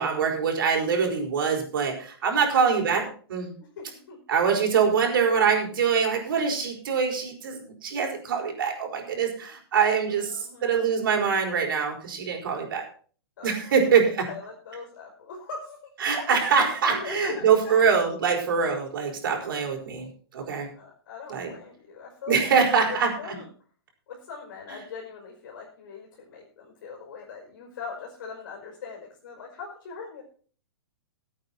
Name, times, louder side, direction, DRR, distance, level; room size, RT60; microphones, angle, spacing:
voice 1, 0.0-3.5 4.3-12.9 13.4-14.3 16.0-20.7 21.3-21.5 22.3-23.3, right 6 dB, 55° right, 2 dB, 4.9 m, -24 dB
voice 2, 3.6-4.2 10.0-10.8 13.4-13.7 14.2-15.8 16.5-17.8 20.7-22.4 22.9-23.5 24.1-30.2, left 5 dB, 50° left, -1 dB, 4.9 m, -41 dB
17.0 x 8.8 x 4.3 m, 0.42 s
hypercardioid pair, 175°, 13 cm